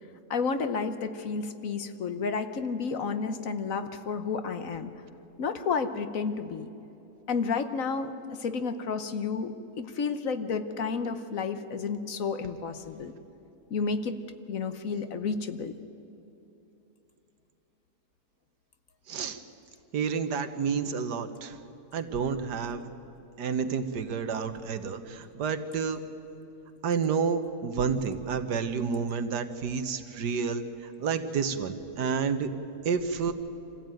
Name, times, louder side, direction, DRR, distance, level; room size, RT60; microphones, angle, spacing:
voice 1, 0.3-4.9 5.4-6.7 7.3-13.1 13.7-14.1 14.5-15.8, left 5 dB, 60° left, 9 dB, 1.3 m, -31 dB
voice 2, 19.1-19.4 19.9-21.6 21.9-22.8 23.4-26.0 26.8-30.6 31.0-32.5 32.9-33.3, right 6 dB, 85° right, 9 dB, 1.7 m, -29 dB
25.0 x 15.5 x 9.1 m, 3.0 s
omnidirectional pair, 1.7 m